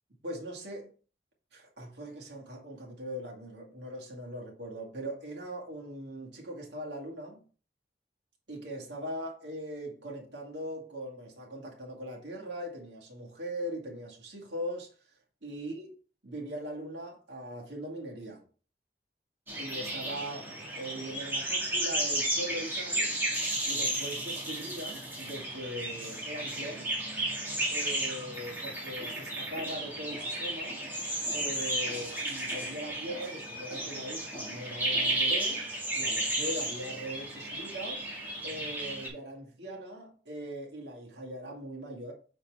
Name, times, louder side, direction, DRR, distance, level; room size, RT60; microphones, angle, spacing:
voice 1, 0.2-0.9 1.5-7.5 8.5-14.9 15.4-15.9 16.2-18.4 19.6-23.1 23.7-26.9 27.7-30.8 31.3-35.7 35.9-38.1 38.4-42.1, equal, 85° right, 2.1 m, -40 dB
sound 1, 19.5-39.1, right 1 dB, 10° right, 1.9 m, -33 dB
6.8 x 4.3 x 3.5 m
head